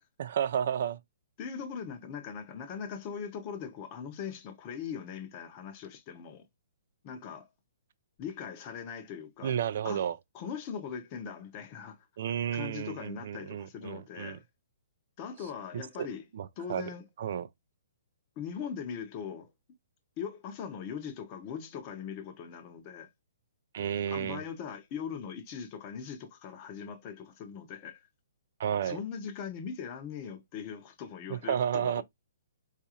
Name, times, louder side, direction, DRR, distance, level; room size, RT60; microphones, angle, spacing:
voice 1, 0.2-1.0 9.4-10.2 12.2-14.4 15.7-16.1 16.3-16.9 17.2-17.5 23.7-24.4 28.6-29.0 31.3-32.0, right 9 dB, 50° right, 0.4 m, -32 dB
voice 2, 1.4-6.4 7.0-7.5 8.2-9.6 9.8-10.0 10.3-12.0 12.5-14.4 15.2-16.2 16.6-17.1 18.4-19.5 20.2-23.1 24.1-28.0 28.8-31.9, left 7 dB, 25° left, 0.6 m, -40 dB
3.9 x 2.4 x 2.7 m
hypercardioid pair, 165°, 0 cm